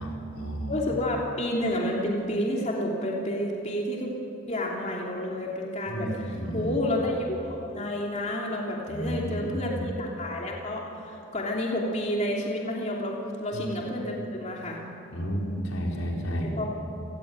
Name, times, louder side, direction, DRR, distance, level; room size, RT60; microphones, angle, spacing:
voice 1, 0.0-0.7 5.9-6.8 8.9-9.8 13.5-13.7 15.1-16.5, equal, 80° left, -1 dB, 4.7 m, -32 dB
voice 2, 0.7-4.1 4.5-14.8 16.4-16.7, left 1 dB, 35° left, -2 dB, 3.0 m, -30 dB
29.0 x 18.0 x 9.0 m, 2.8 s
head